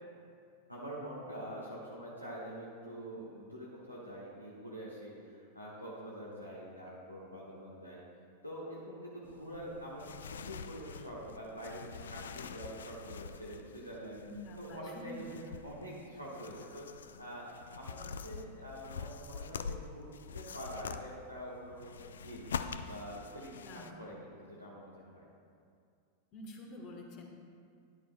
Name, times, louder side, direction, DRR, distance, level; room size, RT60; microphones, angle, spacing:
voice 1, 0.7-8.0 8.4-14.2 14.6-17.5 17.7-25.3, equal, 90° left, -6 dB, 1.4 m, -46 dB
sound 1, 9.2-23.9, left 6 dB, 65° left, 0.3 m, -45 dB
voice 2, 14.3-15.3 23.5-23.9 26.3-27.2, left 1 dB, 40° left, 1 dB, 1.2 m, -47 dB
12.5 x 10.0 x 2.2 m, 2.3 s
figure-of-eight pair, 90°, 0 cm